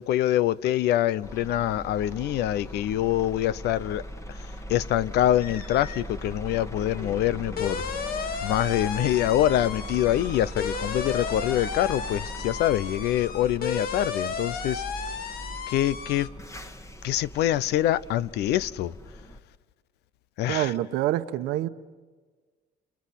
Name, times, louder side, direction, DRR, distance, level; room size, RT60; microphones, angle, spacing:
voice 1, 0.0-7.8 8.4-15.3 15.7-16.3 17.0-18.9 20.4-20.7, left 13 dB, 80° left, 0.8 m, -25 dB
sound 1, 1.2-19.4, equal, 15° left, 1.7 m, -39 dB
sound 2, 5.4-6.1 6.4-16.3, left 6 dB, 60° left, 2.2 m, -34 dB
voice 2, 20.5-21.7, right 14 dB, 90° right, 1.2 m, -26 dB
30.0 x 29.5 x 5.9 m
cardioid pair, 110°, 17 cm